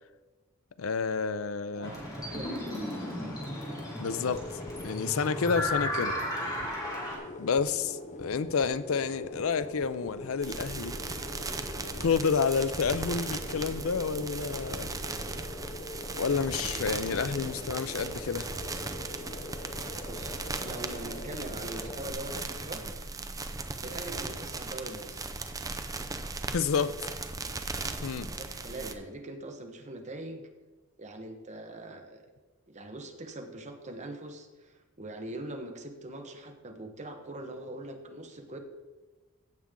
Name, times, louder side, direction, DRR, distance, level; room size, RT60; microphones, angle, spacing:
voice 1, 0.8-1.9 4.0-4.4 4.8-6.2 7.4-11.0 11.5-11.6 12.0-14.9 16.2-18.5 26.5-26.9 28.0-28.3, left 5 dB, 85° left, 14 dB, 0.5 m, -29 dB
voice 2, 1.7-3.4 20.1-22.9 23.8-25.7 27.3-27.6 28.3-30.5 31.0-32.2 32.7-38.6, right 1 dB, 35° right, 4 dB, 1.2 m, -42 dB
sound 1, 1.8-7.2, left 1 dB, 20° left, 3.0 m, -35 dB
sound 2, 2.4-22.1, left 2 dB, 35° left, 0.7 m, -43 dB
sound 3, 10.4-28.9, right 3 dB, 15° right, 0.6 m, -37 dB
16.0 x 7.2 x 3.8 m, 1.2 s
head